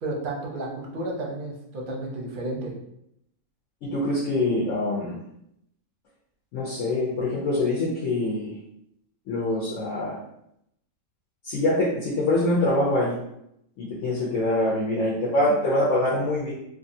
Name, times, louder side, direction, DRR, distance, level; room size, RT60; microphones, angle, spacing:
voice 1, 0.0-2.7, right 2 dB, 45° right, -2 dB, 0.7 m, -32 dB
voice 2, 3.8-5.2 6.5-8.5 9.3-10.2 11.4-13.2 13.8-16.5, left 1 dB, 65° left, -6 dB, 1.0 m, -24 dB
3.2 x 2.4 x 2.7 m, 0.77 s
omnidirectional pair, 1.5 m